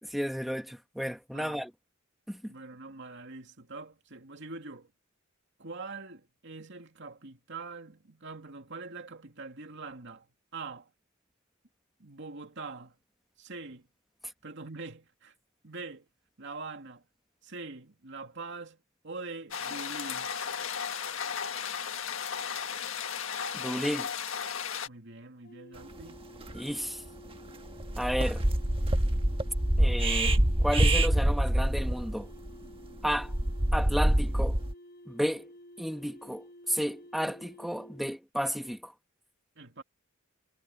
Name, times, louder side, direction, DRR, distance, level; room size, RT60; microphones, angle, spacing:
voice 1, 0.0-1.7 2.3-2.4 23.5-24.1 26.5-27.0 28.0-28.4 29.8-32.3 33.0-33.3 33.7-34.6 35.1-35.4 35.8-38.9, equal, ahead, 1.5 m, -32 dB
voice 2, 2.5-4.9 5.6-10.3 10.5-10.9 12.0-13.0 13.4-13.9 14.4-15.3 15.6-16.1 16.4-17.0 17.4-18.8 19.0-20.3 24.9-26.3 39.6-39.8, right 3 dB, 60° right, 2.5 m, -43 dB
sound 1, 19.5-24.9, left 7 dB, 75° left, 1.6 m, -35 dB
sound 2, 25.4-38.2, equal, 50° left, 6.2 m, -52 dB
sound 3, 26.0-26.1 26.4-26.6 27.1-27.3 27.7-34.7, right 1 dB, 25° right, 1.4 m, -26 dB
head